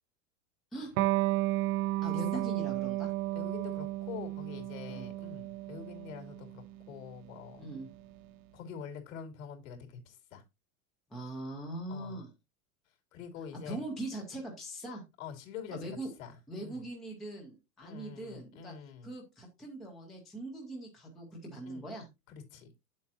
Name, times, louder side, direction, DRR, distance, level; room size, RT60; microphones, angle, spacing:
Electric guitar, 1.0-8.1, right 16 dB, 70° right, 0.8 m, -33 dB
voice 1, 2.0-3.1 4.9-5.1 7.6-7.9 11.1-12.3 13.6-15.0 15.7-16.1 16.5-18.7 19.0-22.1, right 2 dB, ahead, 0.3 m, -41 dB
voice 2, 3.3-7.7 8.5-10.4 11.9-12.2 13.1-13.8 15.2-15.9 16.2-16.8 17.8-19.1 21.6-21.8 22.3-22.7, left 7 dB, 70° left, 3.1 m, -45 dB
8.5 x 7.4 x 2.8 m
supercardioid pair, 170°, 41 cm